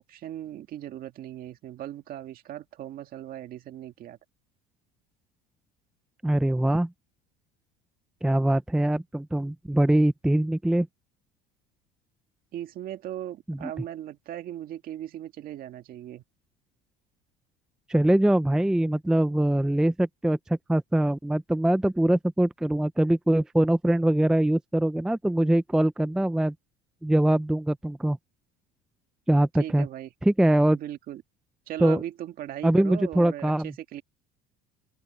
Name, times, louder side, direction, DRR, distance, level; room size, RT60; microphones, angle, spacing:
voice 1, 0.0-4.2 12.5-16.2 29.6-30.1 30.7-31.2 31.7-34.0, right 12 dB, 50° right, 2.0 m, -38 dB
voice 2, 6.2-6.9 8.2-10.9 13.5-13.7 17.9-26.5 27.0-28.2 29.3-29.9 30.2-30.8 31.8-32.0 32.6-33.7, right 1 dB, 5° right, 0.4 m, -23 dB
open air
cardioid pair, 130°, 19 cm